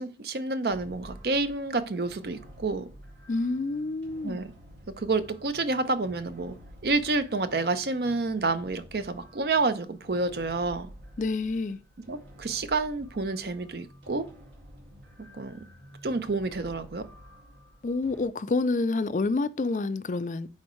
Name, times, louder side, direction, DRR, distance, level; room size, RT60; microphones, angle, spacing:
voice 1, 0.0-2.9 4.2-4.5 5.0-6.6 6.8-10.9 12.1-14.3 15.4-15.6 16.0-17.1, right 3 dB, 65° right, 0.6 m, -29 dB
sound 1, 0.7-18.3, equal, 80° right, 2.3 m, -50 dB
voice 2, 3.3-4.4 11.2-11.8 17.8-20.5, left 3 dB, 45° left, 0.4 m, -28 dB
9.6 x 4.2 x 3.1 m
head